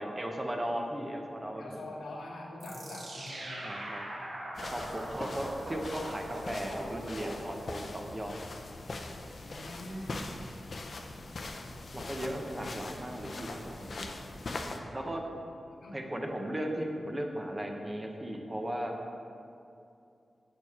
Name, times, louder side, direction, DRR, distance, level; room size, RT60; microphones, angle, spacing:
voice 1, 0.0-1.8 3.6-4.0 4.6-8.4 11.9-14.1 14.9-15.2 15.9-19.0, equal, 25° right, 2 dB, 0.9 m, -36 dB
voice 2, 1.6-3.8 9.4-10.1 12.2-12.7 14.8-15.2 15.8-16.0, left 1 dB, 85° left, -2 dB, 1.0 m, -44 dB
sound 1, 2.6-7.9, right 1 dB, 65° right, 0.9 m, -41 dB
sound 2, 4.5-14.8, left 2 dB, 65° left, 0.5 m, -42 dB
6.7 x 4.4 x 4.3 m, 2.6 s
cardioid pair, 40°, 0 cm